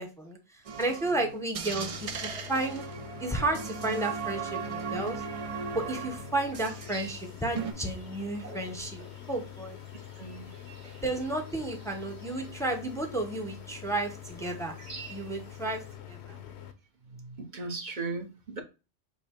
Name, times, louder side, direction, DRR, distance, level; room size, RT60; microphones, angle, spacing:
voice 1, 0.0-2.8 3.2-5.2 5.7-9.0 9.3-9.8 11.0-14.7 15.1-16.3, right 2 dB, 5° left, 0.7 m, -32 dB
sound 1, 0.6-7.2 7.5-7.7, right 6 dB, 65° right, 0.3 m, -37 dB
sound 2, 1.7-16.7, left 11 dB, 70° left, 0.9 m, -46 dB
sound 3, 4.5-15.9, right 4 dB, 85° right, 1.8 m, -52 dB
voice 2, 10.2-10.5 17.2-18.6, right 3 dB, 45° right, 0.9 m, -37 dB
5.6 x 2.1 x 4.3 m
omnidirectional pair, 1.2 m